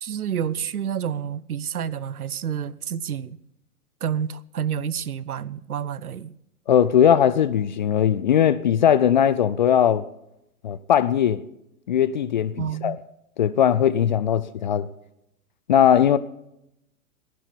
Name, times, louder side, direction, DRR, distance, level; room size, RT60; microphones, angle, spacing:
voice 1, 0.0-3.4 4.0-6.3 12.6-13.0, right 8 dB, 70° right, 0.7 m, -29 dB
voice 2, 6.7-10.0 10.6-11.4 11.9-13.0 13.4-14.9 15.7-16.2, left 9 dB, 30° left, 0.4 m, -19 dB
15.0 x 11.0 x 6.8 m
figure-of-eight pair, 110°, 46 cm